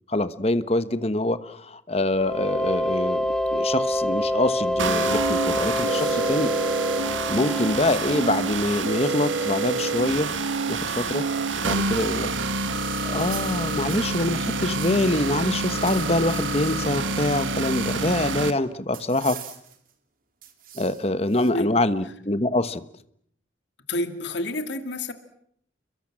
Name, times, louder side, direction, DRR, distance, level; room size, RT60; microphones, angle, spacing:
voice 1, 0.1-3.2 3.5-6.5 7.3-10.3 10.7-11.2 11.6-12.3 13.0-19.4 20.8-22.8, left 1 dB, 30° left, 13 dB, 1.2 m, -25 dB
sound 1, 2.1-8.8, left 1 dB, 5° left, 1.3 m, -27 dB
sound 2, 4.8-18.5, right 3 dB, 85° right, 1.9 m, -27 dB
sound 3, 13.0-15.3 15.6-16.8 17.2-18.3 18.9-19.9 20.4-21.5, right 10 dB, 45° right, 3.0 m, -43 dB
voice 2, 23.9-25.1, left 1 dB, 70° left, 8 dB, 2.5 m, -29 dB
30.0 x 22.5 x 7.6 m, 0.68 s
head